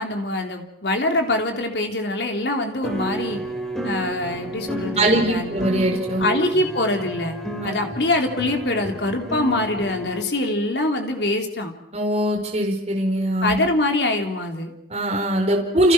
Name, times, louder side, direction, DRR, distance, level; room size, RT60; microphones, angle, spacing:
voice 1, 0.0-3.4 3.8-5.6 6.2-7.4 7.6-11.7 13.4-14.7, left 2 dB, 75° left, 4 dB, 3.6 m, -24 dB
sound 1, 2.8-10.2, right 1 dB, 5° left, 4.6 m, -31 dB
voice 2, 5.0-6.2 7.6-7.7 11.9-13.6 14.9-15.9, right 1 dB, 40° right, 1 dB, 4.8 m, -21 dB
29.5 x 29.0 x 6.3 m, 0.78 s
head